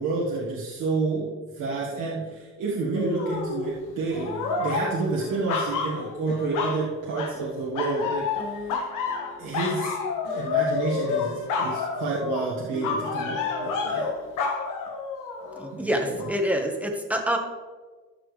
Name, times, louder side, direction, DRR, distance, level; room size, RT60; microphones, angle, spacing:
voice 1, 0.0-8.7 9.4-9.9 10.3-14.1 15.7-16.3, right 3 dB, 85° right, -6 dB, 1.8 m, -29 dB
sound 1, 2.9-3.7 4.1-6.8 7.1-7.5 7.7-15.7 16.2-16.3, left 5 dB, 90° left, 1.4 m, -29 dB
voice 2, 15.6-17.4, equal, 5° right, 3 dB, 1.5 m, -26 dB
13.5 x 6.1 x 3.3 m, 1.4 s
cardioid pair, 90°, 30 cm